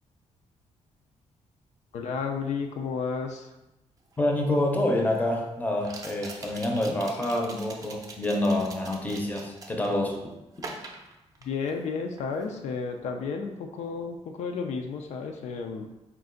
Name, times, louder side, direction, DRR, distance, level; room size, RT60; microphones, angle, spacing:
voice 1, 1.9-3.5 11.4-15.9, left 5 dB, 80° left, 4 dB, 0.4 m, -32 dB
sound 1, 4.1-4.2 5.8-10.0 10.6-11.9 12.2-12.5, right 3 dB, 30° right, 0.5 m, -43 dB
voice 2, 4.2-10.2, left 1 dB, 15° left, 1 dB, 0.6 m, -27 dB
4.5 x 2.5 x 3.7 m, 0.96 s
cardioid pair, 150°, 12 cm